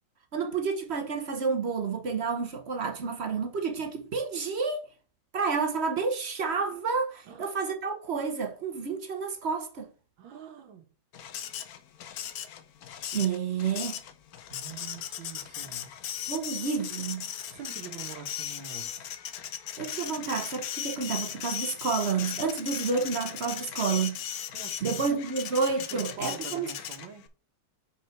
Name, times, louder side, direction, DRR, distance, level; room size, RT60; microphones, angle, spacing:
voice 1, 0.3-4.8 5.3-9.9 13.1-14.0 16.3-17.3 19.8-24.2 24.8-26.7, right 5 dB, 50° right, 0.8 m, -30 dB
voice 2, 10.2-10.9 14.5-15.9 17.5-19.1 24.5-25.1 25.9-27.2, right 6 dB, 85° right, 1.8 m, -44 dB
Printer, 11.1-27.3, left 10 dB, 65° left, 1.0 m, -37 dB
5.4 x 5.0 x 4.5 m
omnidirectional pair, 2.1 m